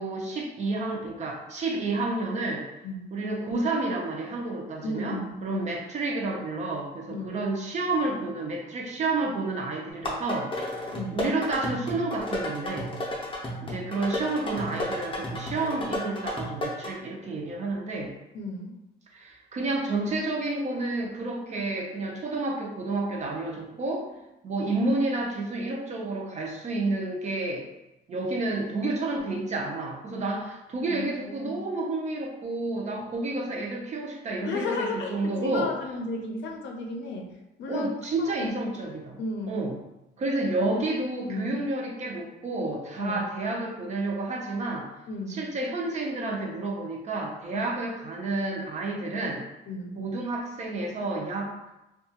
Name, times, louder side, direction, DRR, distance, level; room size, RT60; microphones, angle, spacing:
voice 1, 0.0-2.7 3.1-10.5 11.1-12.9 13.6-18.1 19.1-24.2 24.4-27.7 28.1-35.7 37.7-39.2 39.5-39.7 40.2-44.9 45.3-49.4 50.0-51.5, right 2 dB, 40° right, 0 dB, 0.5 m, -30 dB
voice 2, 4.8-5.7 7.1-7.4 10.9-11.3 18.3-18.8 30.8-31.6 34.4-37.3 37.6-37.9 38.2-38.5 39.2-39.6 40.6-40.8 41.3-41.5 43.0-43.2 45.1-45.4 47.5-47.7 49.7-50.0, left 2 dB, 75° left, 2 dB, 0.5 m, -34 dB
sound 1, 9.9-16.9, left 1 dB, 25° left, 0.5 m, -33 dB
2.7 x 2.3 x 2.8 m, 0.97 s
cardioid pair, 155°, 19 cm